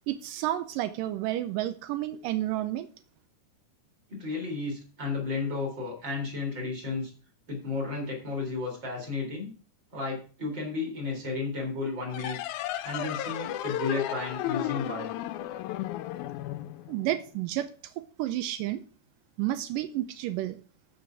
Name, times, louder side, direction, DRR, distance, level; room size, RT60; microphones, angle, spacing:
voice 1, 0.1-2.9 16.9-17.9 18.2-18.8 19.4-20.6, right 14 dB, 85° right, 10 dB, 2.3 m, -31 dB
voice 2, 4.1-7.1 7.5-9.5 9.9-12.4 12.8-15.1, left 3 dB, 35° right, 0 dB, 4.3 m, -33 dB
sound 1, 12.1-17.4, left 13 dB, 80° left, 1.9 m, -34 dB
13.5 x 4.8 x 6.0 m, 0.40 s
omnidirectional pair, 3.8 m